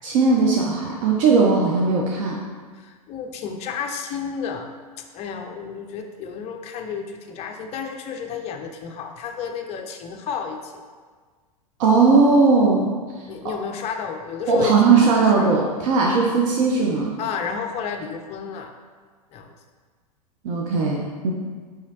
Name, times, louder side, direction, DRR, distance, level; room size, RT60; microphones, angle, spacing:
voice 1, 0.0-2.4 11.8-12.9 14.5-17.1 20.4-21.3, right 4 dB, 55° right, -1 dB, 0.5 m, -18 dB
voice 2, 2.7-4.7 5.1-10.7 13.3-15.8 17.2-18.7 19.3-19.5, left 6 dB, 30° left, 4 dB, 0.4 m, -32 dB
4.9 x 3.0 x 2.8 m, 1.5 s
hypercardioid pair, 100°, 20 cm